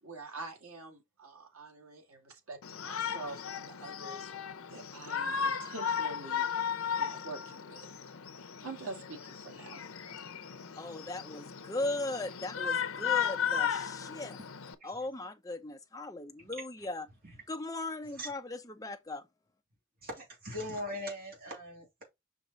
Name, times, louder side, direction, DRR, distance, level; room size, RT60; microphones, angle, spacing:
voice 1, 0.0-4.2 4.7-6.5 6.9-7.9 8.6-9.8, right 3 dB, 80° right, 2.1 m, -46 dB
Shout, 2.6-14.7, left 7 dB, 80° left, 0.8 m, -35 dB
voice 2, 10.8-14.4 14.8-17.1 17.5-19.2, left 2 dB, 15° left, 0.7 m, -38 dB
voice 3, 20.0-22.0, left 1 dB, 45° right, 3.1 m, -40 dB
5.9 x 4.8 x 4.1 m
head